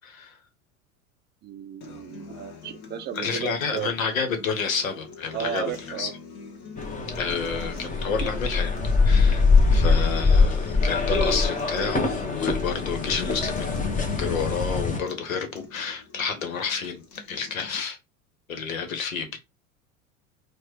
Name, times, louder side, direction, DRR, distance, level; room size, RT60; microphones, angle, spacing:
voice 1, 0.0-0.4 3.1-5.7 6.0-6.1 7.1-8.7 9.0-9.4 9.7-18.0 18.5-19.4, left 5 dB, 75° left, 1.3 m, -30 dB
voice 2, 1.4-3.9 5.3-6.1, right 10 dB, 25° right, 0.5 m, -34 dB
Acoustic guitar, 1.8-17.8, left 4 dB, 40° left, 1.4 m, -44 dB
sound 1, 6.8-15.0, left 4 dB, 20° left, 1.1 m, -23 dB
4.6 x 2.4 x 4.7 m
figure-of-eight pair, 80°, 41 cm